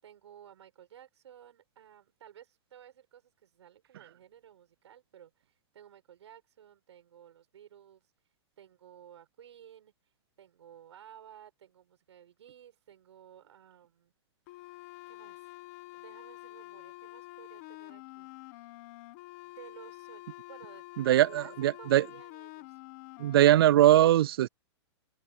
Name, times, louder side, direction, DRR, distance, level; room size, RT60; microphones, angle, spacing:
voice 1, 0.0-5.5 5.7-8.1 8.6-9.9 10.4-14.1 14.5-15.6 15.9-18.8 19.4-22.8, right 10 dB, 70° right, 6.7 m, -55 dB
sound 1, 14.5-23.7, left 20 dB, 30° left, 1.4 m, -48 dB
voice 2, 21.0-22.0 23.2-24.5, right 13 dB, 55° right, 0.4 m, -21 dB
open air
hypercardioid pair, 165°, 15 cm